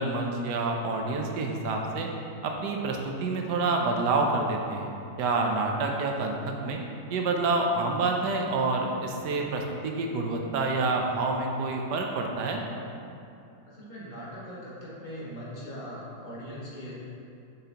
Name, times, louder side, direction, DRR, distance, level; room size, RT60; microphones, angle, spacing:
voice 1, 0.0-2.1 2.4-4.9 5.2-6.8 7.1-12.6, right 3 dB, 90° right, 2 dB, 1.3 m, -28 dB
voice 2, 13.7-16.9, equal, 30° left, -8 dB, 1.5 m, -40 dB
6.7 x 5.9 x 2.9 m, 2.6 s
omnidirectional pair, 1.7 m